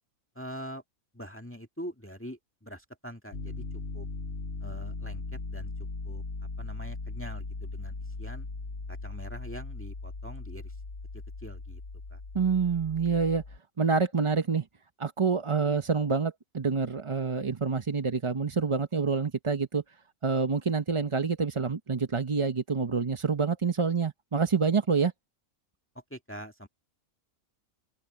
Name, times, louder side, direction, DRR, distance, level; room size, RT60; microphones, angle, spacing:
voice 1, 0.4-0.8 1.1-3.6 3.9-4.1 4.6-5.7 6.0-6.2 6.6-8.5 8.9-10.7 11.4-11.8 12.1-12.2 26.1-26.7, equal, 10° left, 1.9 m, -43 dB
Piano, 3.3-13.6, left 3 dB, 50° left, 2.0 m, -39 dB
voice 2, 12.3-13.4 13.8-14.6 15.0-19.8 20.2-25.1, right 5 dB, 30° right, 0.6 m, -27 dB
open air
omnidirectional pair, 1.5 m